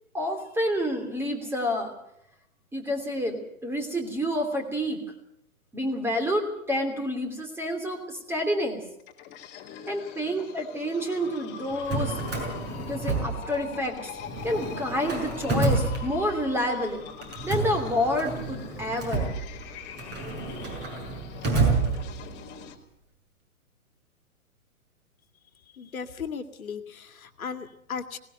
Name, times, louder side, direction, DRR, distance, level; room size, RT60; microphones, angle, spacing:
voice 1, 0.1-1.9 2.7-5.0 5.7-8.8 9.9-12.2 12.8-14.0 14.4-17.0 17.4-19.3, equal, 5° right, 4 dB, 3.0 m, -28 dB
sound 1, 9.0-22.8, left 7 dB, 25° left, 2.4 m, -42 dB
Drawer open or close, 11.7-13.9 14.2-16.6 17.2-22.5, right 3 dB, 25° right, 6.0 m, -29 dB
voice 2, 25.8-28.2, left 6 dB, 70° left, 8 dB, 2.1 m, -36 dB
19.0 x 18.5 x 8.1 m, 0.78 s
figure-of-eight pair, 125°, 44 cm